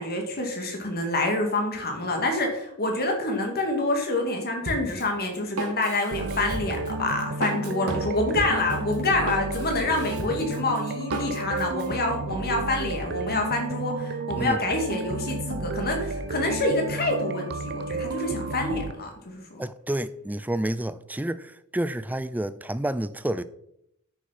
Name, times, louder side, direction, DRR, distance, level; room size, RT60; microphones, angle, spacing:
voice 1, 0.0-19.6, left 2 dB, 45° left, 2.4 m, -27 dB
Drum kit, 4.7-11.9, right 1 dB, 80° right, 2.2 m, -35 dB
sound 1, 6.1-18.9, right 3 dB, 50° right, 0.8 m, -32 dB
voice 2, 19.6-21.4 21.7-23.4, right 1 dB, 5° right, 0.4 m, -29 dB
9.4 x 6.4 x 5.9 m
head